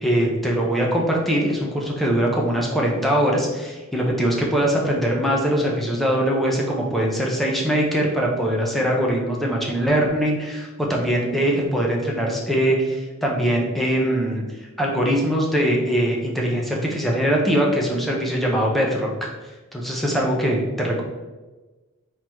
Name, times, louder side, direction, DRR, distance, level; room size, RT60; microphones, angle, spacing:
voice 1, 0.0-14.4 14.8-19.3 19.7-21.0, equal, ahead, -2 dB, 0.7 m, -22 dB
3.9 x 3.1 x 4.5 m, 1.2 s
head